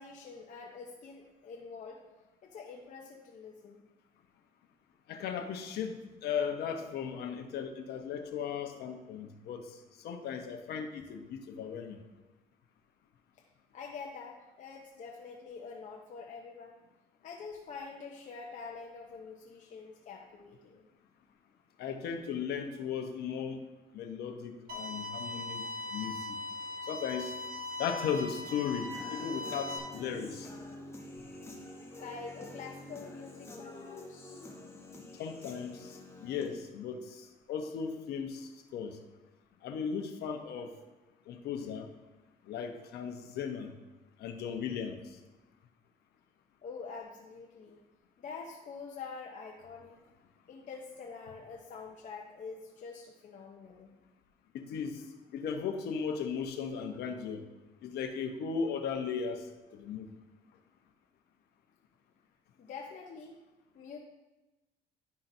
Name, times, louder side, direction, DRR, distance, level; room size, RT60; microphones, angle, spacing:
voice 1, 0.0-2.0 2.4-3.9 13.7-16.8 17.2-20.9 25.6-25.7 32.0-34.4 46.6-47.8 48.2-50.0 50.5-53.9 62.6-63.4 63.7-64.0, left 5 dB, 45° left, -1 dB, 0.8 m, -46 dB
voice 2, 5.1-9.8 10.0-12.0 21.8-23.6 23.9-26.4 26.8-27.4 27.8-30.5 35.2-39.0 39.6-40.7 41.3-41.9 42.5-43.7 44.2-45.0 54.5-55.0 55.3-57.4 57.8-59.5 59.7-60.1, left 6 dB, 75° left, 5 dB, 0.9 m, -37 dB
sound 1, 24.7-29.8, left 2 dB, 60° right, 1.4 m, -40 dB
Human voice / Guitar, 28.5-36.5, left 2 dB, 15° left, 1.2 m, -47 dB
10.5 x 5.7 x 2.7 m, 1.1 s
cardioid pair, 110°, 17 cm